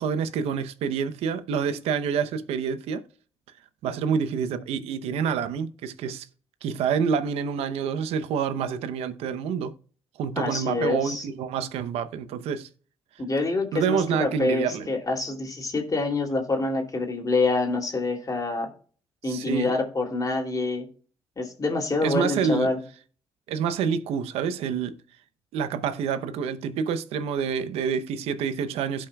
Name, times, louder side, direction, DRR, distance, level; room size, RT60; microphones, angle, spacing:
voice 1, 0.0-3.0 3.8-6.3 6.6-9.7 10.2-12.7 13.7-14.9 19.3-19.7 22.0-22.7 23.5-25.0 25.5-29.1, right 7 dB, 85° right, 0.8 m, -27 dB
voice 2, 10.4-11.2 13.2-18.7 19.2-20.9 21.4-22.8, left 3 dB, 35° left, 2.9 m, -26 dB
16.5 x 5.6 x 2.3 m
supercardioid pair, 50°, 10 cm